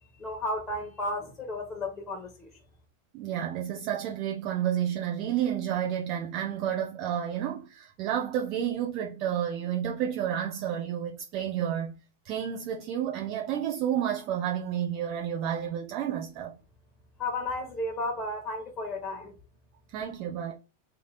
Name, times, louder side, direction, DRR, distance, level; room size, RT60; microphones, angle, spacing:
voice 1, 0.2-2.5 17.2-19.3, left 2 dB, 20° left, 1.5 m, -33 dB
voice 2, 3.1-11.9 12.2-16.5 19.9-20.5, right 10 dB, 40° right, 0.9 m, -30 dB
3.4 x 3.2 x 4.0 m
figure-of-eight pair, 90°, 0 cm